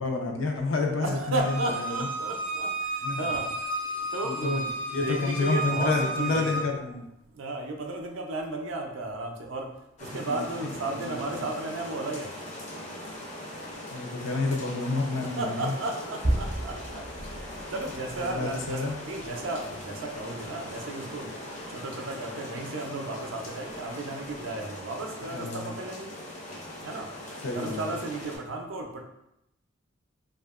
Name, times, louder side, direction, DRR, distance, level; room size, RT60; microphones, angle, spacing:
voice 1, 0.0-2.1 3.0-3.2 4.2-4.6 4.9-7.0 10.3-10.5 10.9-11.4 13.9-15.7 18.2-18.9 25.2-25.7 27.4-27.8, left 3 dB, 85° left, 2 dB, 0.5 m, -29 dB
voice 2, 1.0-2.7 3.2-3.5 4.1-6.6 7.3-9.7 10.0-12.3 15.2-17.4 17.7-21.3 21.7-26.1 26.8-27.1 27.5-29.0, right 2 dB, 80° right, 3 dB, 0.4 m, -34 dB
Bowed string instrument, 1.4-6.6, right 2 dB, 70° left, 0.9 m, -32 dB
sound 1, 10.0-28.4, left 1 dB, 35° left, 0.5 m, -41 dB
sound 2, 15.8-21.2 21.5-21.7 22.0-22.1 22.5-23.9 24.2-24.7 26.2-26.9 27.3-27.4, right 1 dB, 20° right, 0.4 m, -36 dB
2.7 x 2.3 x 2.3 m, 0.84 s
head